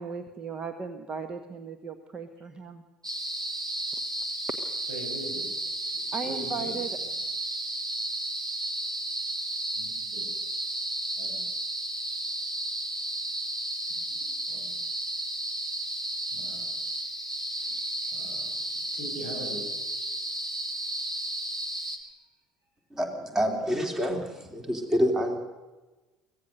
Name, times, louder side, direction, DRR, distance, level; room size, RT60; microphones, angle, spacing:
voice 1, 0.0-2.8 6.1-7.0, right 5 dB, 30° right, 9 dB, 1.4 m, -36 dB
sound 1, 3.0-22.0, right 1 dB, 85° right, 1.7 m, -33 dB
voice 2, 4.9-5.4 6.2-6.7 7.0-7.1 9.7-10.2 11.2-11.4 13.9-14.8 16.3-16.7 17.6-18.6 18.9-19.6, right 1 dB, 70° right, 1 dB, 7.6 m, -42 dB
voice 3, 22.9-25.4, equal, 15° right, 4 dB, 3.2 m, -27 dB
24.0 x 17.0 x 6.6 m, 1.2 s
figure-of-eight pair, 60°, 3 cm